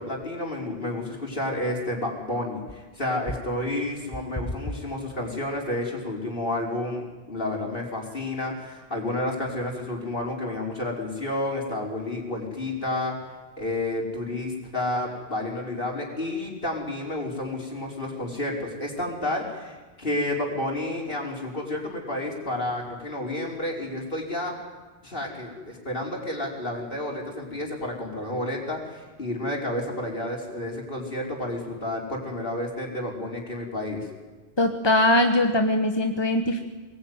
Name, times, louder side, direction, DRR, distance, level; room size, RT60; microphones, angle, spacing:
voice 1, 0.0-13.1 13.6-24.5 25.0-34.1, left 1 dB, 55° left, 0 dB, 5.0 m, -30 dB
voice 2, 34.6-36.6, left 1 dB, 25° left, 5 dB, 1.4 m, -21 dB
24.5 x 20.0 x 9.6 m, 1.3 s
omnidirectional pair, 1.1 m